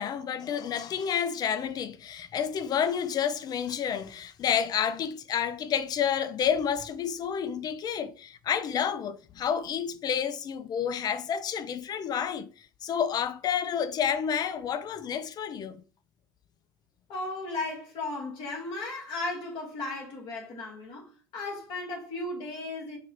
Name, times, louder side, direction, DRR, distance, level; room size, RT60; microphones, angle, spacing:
voice 1, 0.0-12.5 12.8-15.8, left 8 dB, 45° left, 0.5 m, -30 dB
voice 2, 17.1-23.0, left 2 dB, 60° left, 1.8 m, -35 dB
4.6 x 2.4 x 3.1 m
hypercardioid pair, 70°, 10 cm